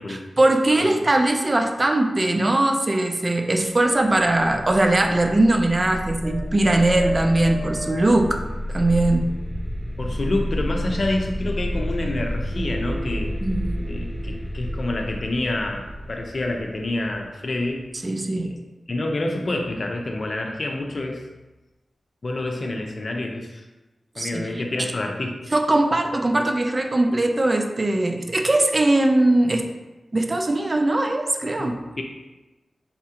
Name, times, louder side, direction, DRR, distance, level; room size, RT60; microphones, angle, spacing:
voice 1, 0.1-8.4 8.7-9.3 13.4-13.8 18.0-18.5 24.2-24.6 25.5-29.7 30.1-31.7, right 2 dB, 35° right, 4 dB, 0.5 m, -20 dB
sound 1, 4.2-17.9, equal, 15° right, 0.9 m, -30 dB
voice 2, 10.0-13.3 13.8-17.9 18.3-18.6 18.9-21.2 22.2-23.6 24.2-25.4 31.6-32.0, left 2 dB, 55° left, 2 dB, 0.6 m, -28 dB
4.2 x 3.6 x 2.9 m, 1.1 s
wide cardioid pair, 75°, 0 cm